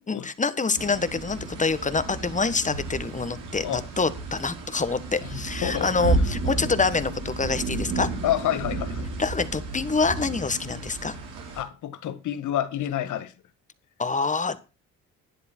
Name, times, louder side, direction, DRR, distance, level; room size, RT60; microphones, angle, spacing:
voice 1, 0.1-8.1 9.2-11.1 14.0-14.6, left 4 dB, 25° left, 1.3 m, -26 dB
sound 1, 0.7-11.6, right 2 dB, 90° right, 5.2 m, -32 dB
voice 2, 8.2-9.1 11.5-13.3, left 11 dB, 75° left, 1.7 m, -28 dB
12.0 x 10.0 x 4.5 m
cardioid pair, 90°, 30 cm